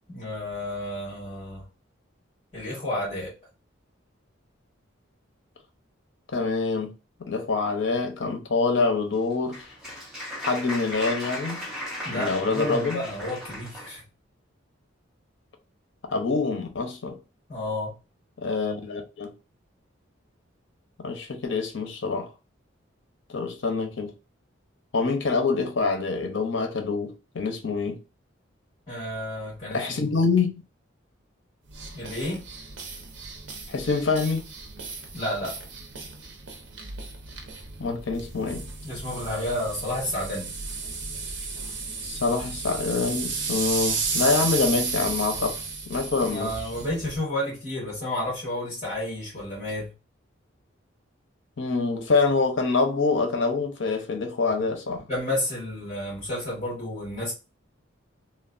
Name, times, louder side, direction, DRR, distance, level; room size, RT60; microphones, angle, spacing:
voice 1, 0.1-1.7 2.5-3.3 12.0-14.0 17.5-17.9 28.9-30.2 31.9-32.4 35.1-35.6 38.8-40.5 46.2-49.9 55.1-57.3, left 1 dB, 30° left, 1.6 m, -31 dB
voice 2, 6.3-6.9 7.3-9.6 10.5-11.6 12.1-13.0 16.1-17.2 18.4-19.3 21.0-22.3 23.3-24.1 24.9-28.0 29.7-30.5 33.7-34.4 37.8-38.7 42.0-45.6 45.9-46.5 51.6-55.0, left 4 dB, 70° left, 0.7 m, -25 dB
Applause, 9.1-14.0, equal, ahead, 1.1 m, -36 dB
sound 1, 31.7-47.2, right 4 dB, 70° right, 0.7 m, -33 dB
3.2 x 2.2 x 2.5 m
head